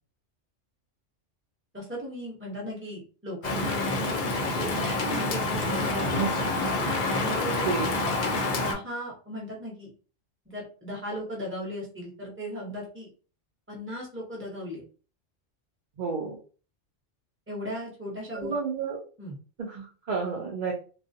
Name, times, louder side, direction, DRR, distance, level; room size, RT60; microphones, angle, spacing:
voice 1, 1.7-3.9 4.4-6.6 7.2-7.9 8.6-9.9 10.5-13.1 13.7-14.8 17.5-18.5 19.2-19.4, equal, 10° right, -3 dB, 0.8 m, -37 dB
Rain, 3.4-8.7, left 2 dB, 55° left, 0.5 m, -27 dB
voice 2, 16.0-16.4 18.3-19.0 19.6-20.7, right 5 dB, 65° right, -3 dB, 0.4 m, -30 dB
2.3 x 2.0 x 2.6 m, 0.38 s
omnidirectional pair, 1.3 m